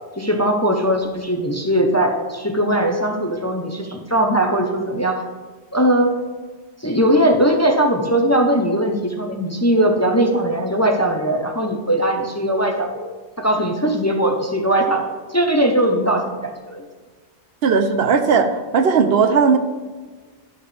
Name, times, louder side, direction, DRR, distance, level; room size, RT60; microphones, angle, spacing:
voice 1, 0.2-5.2 5.7-6.2 6.8-13.1 13.4-16.8, right 1 dB, 15° left, 3 dB, 0.7 m, -19 dB
voice 2, 17.6-19.6, right 5 dB, 65° right, 7 dB, 0.9 m, -16 dB
11.5 x 6.7 x 3.4 m, 1.4 s
omnidirectional pair, 1.1 m